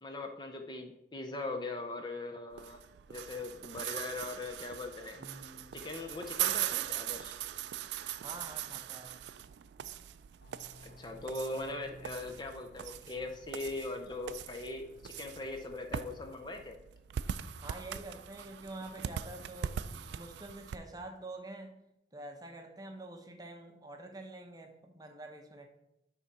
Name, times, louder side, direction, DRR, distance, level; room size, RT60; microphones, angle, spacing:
voice 1, 0.0-2.8 3.1-5.2 5.7-7.4 10.8-16.8, left 2 dB, 25° left, 4 dB, 0.5 m, -40 dB
sound 1, 2.5-20.8, right 10 dB, 75° right, 0.3 m, -41 dB
voice 2, 5.2-5.7 8.2-9.2 17.6-21.8 22.1-25.7, right 2 dB, 20° right, 4 dB, 0.7 m, -47 dB
sound 2, 10.4-15.5, left 1 dB, 60° left, 0.8 m, -58 dB
9.9 x 3.7 x 4.1 m, 0.86 s
head